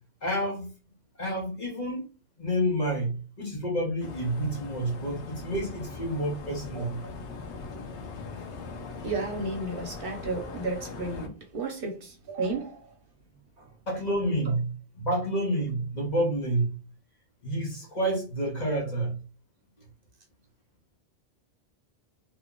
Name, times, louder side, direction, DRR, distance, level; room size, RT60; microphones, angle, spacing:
voice 1, 0.2-0.7 1.2-2.0 2.4-7.0 13.9-16.7 17.4-19.2, right 1 dB, 40° left, 1.0 m, -29 dB
sound 1, 4.0-11.3, left 4 dB, 90° left, 0.9 m, -40 dB
voice 2, 6.7-7.1 9.0-12.9 13.6-13.7, right 3 dB, 55° right, 1.0 m, -33 dB
2.8 x 2.3 x 3.7 m
omnidirectional pair, 1.1 m